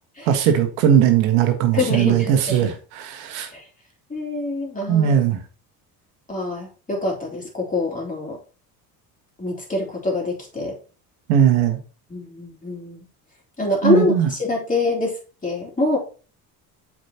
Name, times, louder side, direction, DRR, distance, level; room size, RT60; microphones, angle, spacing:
voice 1, 0.3-3.5 4.9-5.4 11.3-11.8 13.8-14.3, right 9 dB, 85° right, 1.6 m, -18 dB
voice 2, 1.7-2.7 3.5-3.6 4.1-5.1 6.3-8.4 9.4-10.8 12.1-13.0 13.6-16.0, left 2 dB, 20° left, 3.3 m, -25 dB
7.6 x 5.2 x 2.9 m
supercardioid pair, 85°, 44 cm